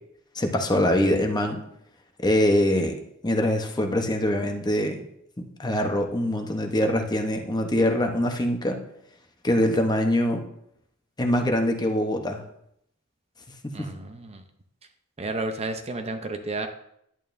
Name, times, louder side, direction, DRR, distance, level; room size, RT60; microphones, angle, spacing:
voice 1, 0.3-1.6 2.2-3.0 3.2-5.0 5.4-8.8 9.4-10.4 11.2-12.4 13.6-13.9, left 1 dB, 20° left, 4 dB, 0.9 m, -23 dB
voice 2, 13.7-14.4 15.2-16.7, right 2 dB, 30° right, 6 dB, 0.6 m, -32 dB
11.0 x 8.9 x 2.6 m, 0.74 s
head